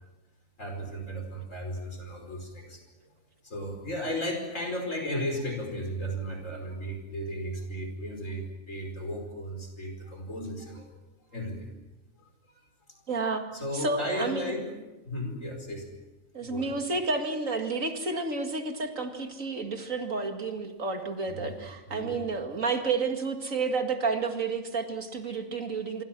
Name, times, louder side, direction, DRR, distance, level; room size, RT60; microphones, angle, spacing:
voice 1, 0.6-2.8 3.4-10.8 11.3-11.7 13.5-14.8 15.0-15.9 16.4-16.7 21.3-21.5 21.9-22.3, equal, 75° left, 4 dB, 5.5 m, -35 dB
voice 2, 13.1-13.4 13.7-14.5 16.3-26.0, right 4 dB, 85° right, 5 dB, 2.6 m, -30 dB
26.5 x 24.0 x 6.1 m, 1.1 s
omnidirectional pair, 1.3 m